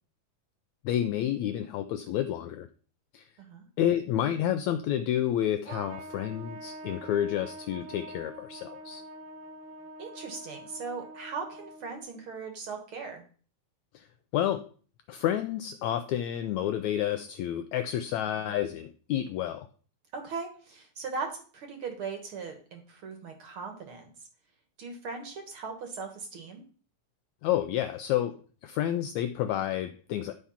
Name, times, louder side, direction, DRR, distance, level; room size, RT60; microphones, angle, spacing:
voice 1, 0.8-2.7 3.1-3.3 3.8-9.0 13.9-14.0 14.3-14.7 15.1-19.7 27.4-30.3, left 11 dB, 80° left, 9 dB, 1.7 m, -30 dB
Trumpet, 5.7-12.2, right 2 dB, 80° right, 2.6 m, -45 dB
voice 2, 10.0-13.2 18.4-18.5 20.1-24.1 24.8-26.6, right 4 dB, 50° right, 4 dB, 2.1 m, -39 dB
10.5 x 4.8 x 5.7 m, 0.41 s
omnidirectional pair, 3.8 m